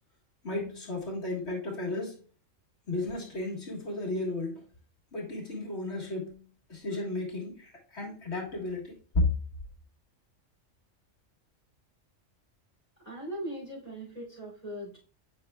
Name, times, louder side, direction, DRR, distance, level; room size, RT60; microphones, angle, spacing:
voice 1, 0.4-2.2 2.9-4.6 5.1-6.4 6.7-9.3, left 2 dB, 55° left, -2 dB, 1.9 m, -33 dB
voice 2, 13.0-15.0, right 1 dB, 30° right, -4 dB, 3.1 m, -39 dB
7.8 x 5.4 x 2.3 m, 0.40 s
omnidirectional pair, 1.4 m